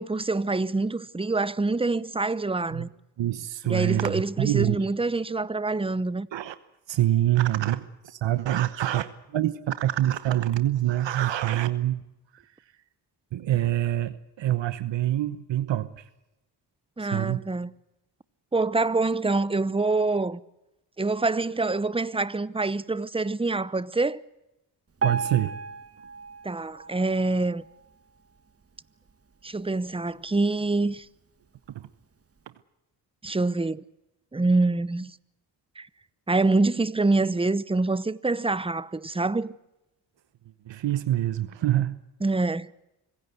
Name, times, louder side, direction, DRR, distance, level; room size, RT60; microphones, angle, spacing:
voice 1, 0.0-2.9 3.6-6.3 17.0-17.7 18.5-20.4 21.0-24.2 26.4-27.6 29.4-31.0 33.2-33.8 34.3-35.1 35.8-35.9 36.3-39.6 42.2-42.7, right 3 dB, 10° right, 0.8 m, -25 dB
voice 2, 3.2-4.9 6.3-6.5 6.9-12.0 12.3-12.4 13.3-16.0 17.0-17.4 25.0-25.6 31.7-31.9 40.7-42.0, right 13 dB, 75° right, 1.0 m, -26 dB
Piano, 25.0-28.1 28.6-28.8 29.1-29.2 29.9-30.0 30.6-30.7, right 4 dB, 30° right, 1.5 m, -34 dB
25.0 x 16.5 x 8.1 m
cardioid pair, 65°, 44 cm